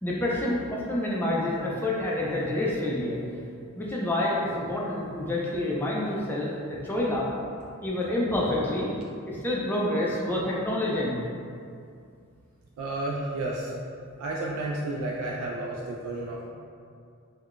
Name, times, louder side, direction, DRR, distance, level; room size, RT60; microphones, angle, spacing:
voice 1, 0.0-3.2 3.8-7.3 7.8-8.9 9.3-11.2, left 1 dB, 10° left, -5 dB, 0.3 m, -28 dB
voice 2, 12.8-13.7 14.2-16.5, right 2 dB, 80° right, 0 dB, 0.3 m, -31 dB
3.6 x 2.1 x 2.4 m, 2.4 s
head